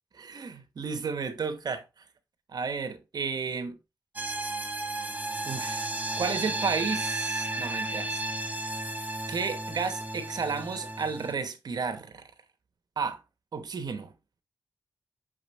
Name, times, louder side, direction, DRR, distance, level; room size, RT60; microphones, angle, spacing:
voice 1, 0.1-1.8 2.5-3.8 5.5-5.9 6.2-8.2 9.3-12.2 13.0-13.2 13.5-14.1, right 5 dB, 75° right, 1.0 m, -32 dB
sound 1, 4.2-11.3, right 2 dB, 25° right, 1.1 m, -33 dB
6.1 x 4.9 x 3.1 m
cardioid pair, 65°, 7 cm